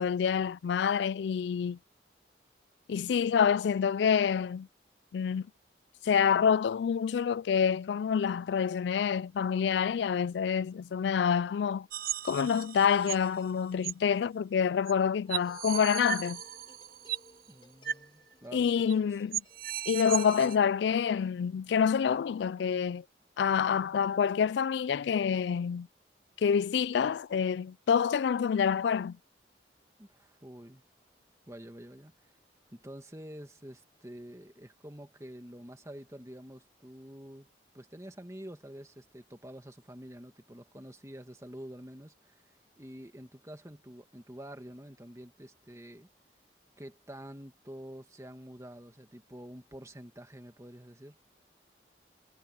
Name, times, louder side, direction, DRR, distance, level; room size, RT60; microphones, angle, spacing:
voice 1, 0.0-1.8 2.9-4.7 5.1-5.5 6.0-11.9 12.2-16.4 18.5-19.4 19.9-23.0 23.4-25.9 26.4-29.2, left 7 dB, 75° left, 0.3 m, -27 dB
sound 1, 11.9-13.3 13.8-13.9 14.9-15.0 15.3-17.3 17.8-18.0 18.3-18.4 18.9-19.0 19.3-20.6, right 11 dB, 55° right, 0.6 m, -36 dB
sound 2, 15.2-22.6, left 1 dB, 30° left, 7.5 m, -62 dB
voice 2, 17.5-18.7 19.0-19.1 30.0-30.8 31.5-32.3 32.7-37.5 37.7-46.1 46.8-51.2, equal, 15° right, 2.1 m, -48 dB
head